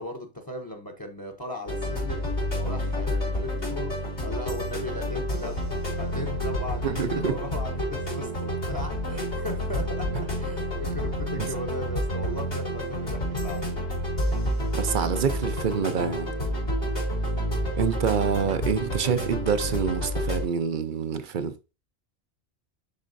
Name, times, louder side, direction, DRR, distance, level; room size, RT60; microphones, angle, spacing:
voice 1, 0.0-2.2 2.5-5.7 5.9-10.1 10.4-13.7, left 1 dB, 20° left, 0.9 m, -37 dB
sound 1, 1.7-20.4, equal, 85° left, 4.1 m, -29 dB
voice 2, 6.8-7.3 11.4-11.5 14.7-16.3 17.8-21.6, right 7 dB, 55° right, 0.8 m, -26 dB
10.5 x 4.2 x 2.6 m
omnidirectional pair, 1.1 m